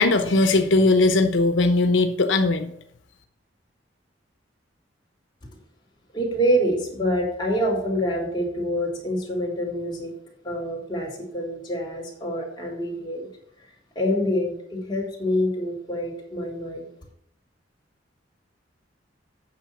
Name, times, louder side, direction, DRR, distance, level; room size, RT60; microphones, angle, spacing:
voice 1, 0.0-2.7, left 2 dB, 90° left, 7 dB, 0.9 m, -19 dB
voice 2, 6.1-10.1 10.4-13.3 14.0-16.9, equal, 25° left, -2 dB, 3.4 m, -26 dB
8.9 x 6.6 x 7.2 m, 0.69 s
head